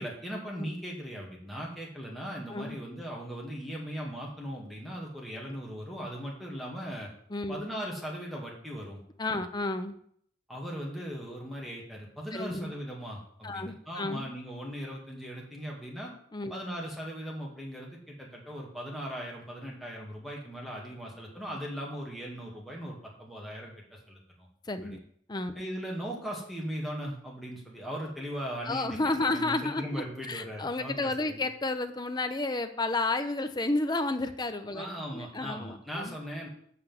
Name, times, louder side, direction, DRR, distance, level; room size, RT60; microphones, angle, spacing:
voice 1, 0.0-7.1 7.5-9.0 10.5-16.1 16.5-24.2 24.8-25.0 25.5-31.4 34.7-36.5, equal, ahead, -3 dB, 2.2 m, -39 dB
voice 2, 7.3-7.7 9.2-9.9 12.3-12.7 13.4-14.3 16.3-16.5 24.7-25.0 25.3-25.5 28.7-34.9 35.1-36.2, left 2 dB, 20° left, 9 dB, 0.7 m, -31 dB
6.5 x 6.0 x 7.4 m, 0.64 s
head